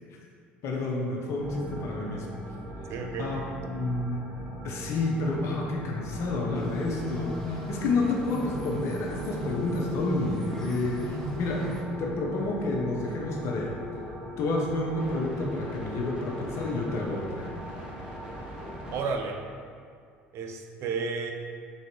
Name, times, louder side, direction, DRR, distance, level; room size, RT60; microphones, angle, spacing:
voice 1, 0.6-2.3 3.2-3.4 3.7-4.2 4.6-13.8 14.4-17.5, left 2 dB, 55° left, -1 dB, 0.7 m, -29 dB
sound 1, 1.4-19.1, equal, 15° right, 1.4 m, -40 dB
voice 2, 2.9-3.5 18.9-19.4 20.3-21.3, right 4 dB, 55° right, 3 dB, 0.5 m, -32 dB
sound 2, 6.5-11.8, equal, 5° left, 0.8 m, -38 dB
3.7 x 2.8 x 4.5 m, 2.2 s
hypercardioid pair, 70°, 6 cm